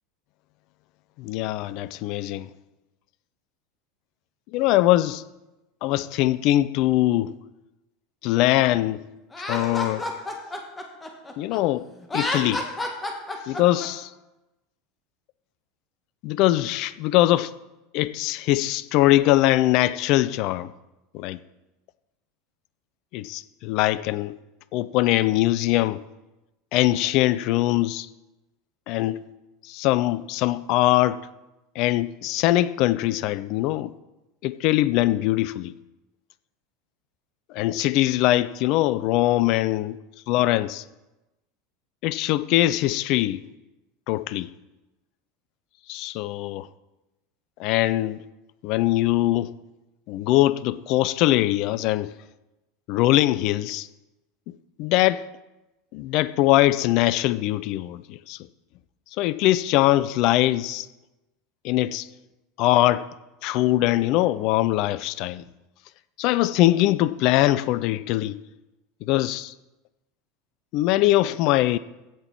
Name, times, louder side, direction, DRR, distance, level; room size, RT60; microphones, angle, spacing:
voice 1, 1.2-2.5 4.5-5.2 5.8-7.3 8.2-9.1 9.5-10.1 11.4-11.9 12.1-12.7 13.5-14.1 16.2-17.5 17.9-20.7 21.1-21.4 23.1-24.4 24.7-26.0 26.7-28.1 28.9-29.2 29.6-31.2 31.8-33.9 34.4-35.7 37.5-40.0 40.3-40.8 42.0-43.4 44.1-44.5 45.9-46.7 47.6-48.2 48.6-49.5 50.1-52.1 52.9-53.9 54.5-55.2 55.9-58.4 59.2-60.9 61.6-62.1 62.6-63.1 63.4-65.4 66.2-68.4 69.0-69.5 70.7-71.8, left 16 dB, 50° left, 0.4 m, -22 dB
Laughter, 9.3-11.6 12.0-13.9, left 2 dB, 15° left, 1.8 m, -30 dB
16.0 x 6.0 x 4.5 m
figure-of-eight pair, 75°, 0 cm